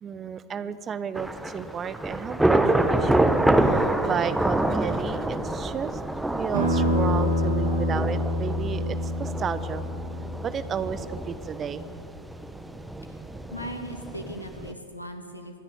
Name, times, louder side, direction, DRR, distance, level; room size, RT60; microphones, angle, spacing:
voice 1, 0.0-6.0 6.3-9.8 10.4-12.1, right 7 dB, 25° right, 14 dB, 0.9 m, -33 dB
Thunder / Rain, 1.1-14.7, right 1 dB, 5° right, 1.2 m, -27 dB
sound 1, 6.5-11.7, left 1 dB, 70° right, 5.7 m, -27 dB
voice 2, 13.5-15.6, equal, 85° left, 5 dB, 2.2 m, -38 dB
25.5 x 10.5 x 9.6 m, 2.3 s
figure-of-eight pair, 90°, 0 cm